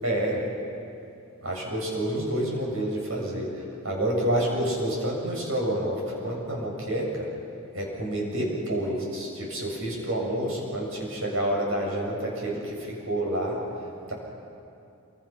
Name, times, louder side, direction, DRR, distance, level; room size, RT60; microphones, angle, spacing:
voice 1, 0.0-0.5 1.4-7.3 7.7-13.6 14.1-14.2, right 1 dB, 75° right, -2 dB, 7.2 m, -28 dB
28.5 x 24.0 x 5.9 m, 2.6 s
head